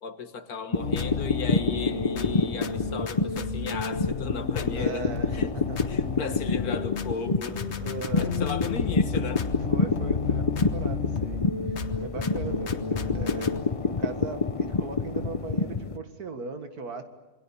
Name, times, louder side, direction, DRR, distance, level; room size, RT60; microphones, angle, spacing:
voice 1, 0.0-5.1 5.3-5.5 5.9-7.6 8.2-9.5, left 5 dB, 75° left, 9 dB, 2.0 m, -35 dB
sound 1, 0.7-16.0, left 4 dB, 30° left, 0.6 m, -28 dB
sound 2, 0.8-13.6, left 4 dB, 50° left, 1.4 m, -32 dB
voice 2, 4.8-5.9 7.4-8.4 9.7-13.5 13.8-17.0, right 4 dB, 80° right, 7 dB, 2.3 m, -38 dB
28.0 x 22.5 x 7.2 m, 1.2 s
omnidirectional pair, 1.6 m